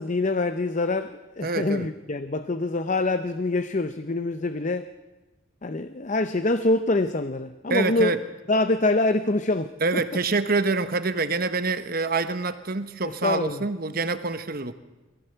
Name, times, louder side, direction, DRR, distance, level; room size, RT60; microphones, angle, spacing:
voice 1, 0.0-4.9 5.6-8.2 8.5-10.0 13.2-13.6, left 2 dB, 40° left, 10 dB, 0.6 m, -25 dB
voice 2, 1.4-1.9 7.7-8.2 9.8-14.7, right 3 dB, 50° right, 11 dB, 1.2 m, -26 dB
22.0 x 16.5 x 8.0 m, 1.1 s
head